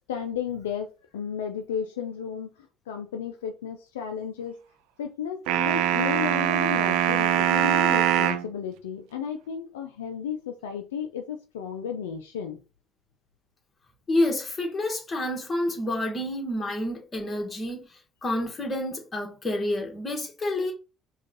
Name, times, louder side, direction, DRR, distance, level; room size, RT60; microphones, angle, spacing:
voice 1, 0.1-2.5 2.9-4.6 5.0-12.6, left 7 dB, 85° left, 0.4 m, -33 dB
sound 1, 5.5-8.5, right 11 dB, 70° right, 0.4 m, -23 dB
voice 2, 14.1-17.9 18.2-20.7, left 1 dB, 35° left, 1.6 m, -28 dB
5.0 x 2.4 x 3.9 m
hypercardioid pair, 55°, 0 cm